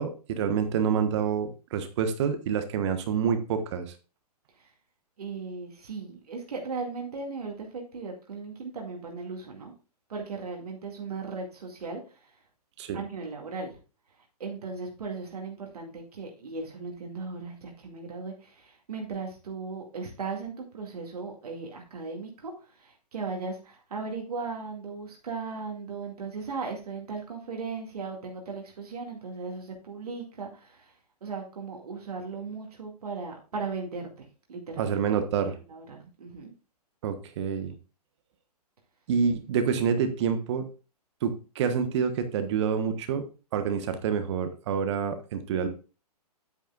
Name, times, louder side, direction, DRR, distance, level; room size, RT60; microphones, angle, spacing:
voice 1, 0.0-3.8 12.8-13.0 34.8-35.6 37.0-37.7 39.1-40.6 41.2-43.2 43.5-45.7, right 7 dB, 45° right, 9 dB, 1.3 m, -27 dB
voice 2, 5.2-9.7 10.1-12.3 12.9-13.8 14.4-30.9 31.2-35.0 35.4-36.5, right 4 dB, 70° right, 1 dB, 2.2 m, -37 dB
9.3 x 9.1 x 2.4 m, 0.33 s
figure-of-eight pair, 125°, 21 cm